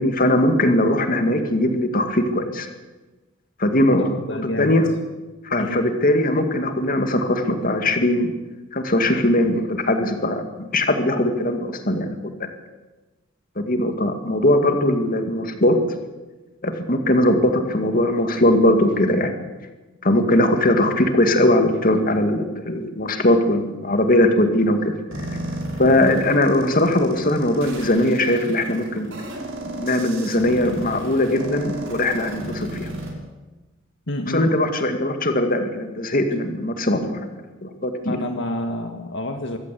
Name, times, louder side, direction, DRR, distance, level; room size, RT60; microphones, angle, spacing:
voice 1, 0.0-2.7 3.6-4.8 5.4-8.3 8.7-12.1 13.6-15.8 16.6-19.3 20.0-25.0 25.3-25.4 25.8-29.1 29.7-32.9 34.3-38.2, left 1 dB, 45° left, 6 dB, 2.3 m, -20 dB
voice 2, 4.0-4.7 5.6-5.8 20.6-20.7 34.1-34.5 38.1-39.6, left 1 dB, 65° left, 5 dB, 1.8 m, -28 dB
sound 1, 25.1-33.1, right 1 dB, 75° right, 5.9 m, -34 dB
23.5 x 15.5 x 8.6 m, 1.2 s
head